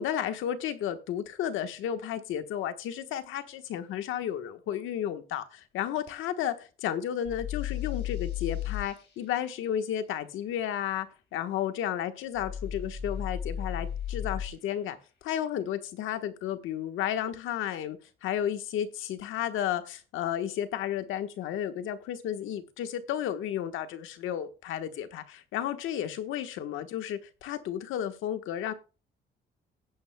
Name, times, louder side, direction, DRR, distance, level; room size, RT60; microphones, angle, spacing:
voice 1, 0.0-15.0 15.2-28.7, left 10 dB, 90° left, 1.2 m, -33 dB
sound 1, 7.3-8.9 12.4-14.5, left 9 dB, 65° left, 5.0 m, -34 dB
16.5 x 9.2 x 2.2 m
cardioid pair, 90°, 20 cm